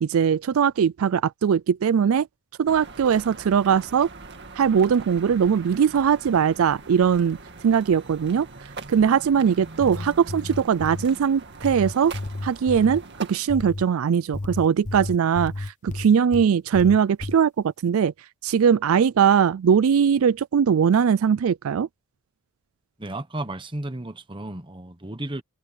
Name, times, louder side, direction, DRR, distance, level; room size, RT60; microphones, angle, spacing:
voice 1, 0.0-2.3 2.6-4.1 4.6-7.4 7.6-8.5 8.9-12.1 12.4-13.0 13.3-18.1 18.4-21.9, right 7 dB, 75° right, 0.4 m, -20 dB
sound 1, 2.7-13.4, right 3 dB, 55° right, 2.1 m, -42 dB
sound 2, 9.6-11.1 11.6-13.0 13.5-13.9 14.3-16.5 16.7-17.4, left 2 dB, 35° left, 1.0 m, -32 dB
voice 2, 23.0-25.4, right 1 dB, 25° right, 1.3 m, -33 dB
head